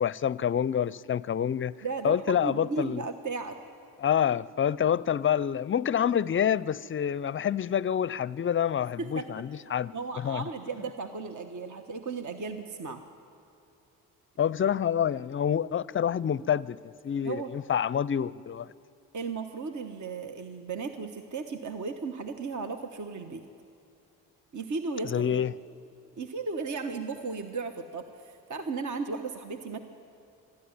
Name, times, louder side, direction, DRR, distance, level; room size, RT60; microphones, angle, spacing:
voice 1, 0.0-1.7 2.0-3.0 4.0-10.4 14.4-18.7 25.1-25.5, left 9 dB, 30° left, 0.5 m, -27 dB
voice 2, 1.8-3.6 9.0-9.2 9.9-13.0 17.2-17.5 19.1-23.5 24.5-25.4 26.2-29.8, right 4 dB, 50° right, 1.3 m, -35 dB
25.0 x 11.5 x 9.7 m
supercardioid pair, 55°, 39 cm